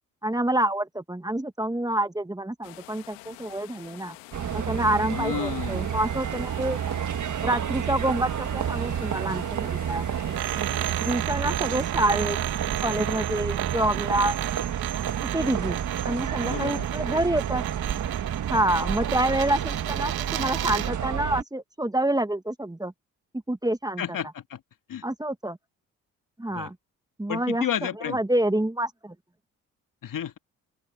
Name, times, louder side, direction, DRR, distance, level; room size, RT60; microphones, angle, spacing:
voice 1, 0.2-4.2 4.5-6.8 7.4-10.3 11.0-12.4 12.8-14.4 15.3-15.8 16.0-17.6 18.5-22.9 23.5-24.0 25.0-25.6 26.4-26.7 27.2-27.7 28.0-29.1, right 1 dB, 10° right, 1.7 m, -27 dB
sound 1, 2.6-11.2, left 22 dB, 90° left, 2.0 m, -47 dB
sound 2, 4.3-21.4, right 9 dB, 50° right, 1.5 m, -30 dB
voice 2, 5.1-5.9 16.4-16.9 24.0-24.6 24.9-25.0 26.5-26.7 27.3-28.2 30.0-30.4, left 9 dB, 60° left, 2.2 m, -32 dB
sound 3, 10.3-21.0, right 15 dB, 75° right, 1.8 m, -34 dB
open air
hypercardioid pair, 45°, 37 cm